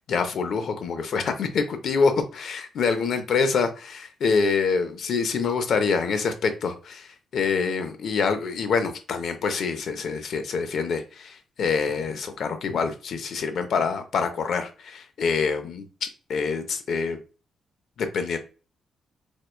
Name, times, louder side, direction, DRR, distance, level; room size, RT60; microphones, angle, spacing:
voice 1, 0.1-17.2 18.0-18.4, left 5 dB, 55° left, 8 dB, 0.4 m, -26 dB
4.4 x 2.2 x 2.2 m, 0.35 s
wide cardioid pair, 180°, 0 cm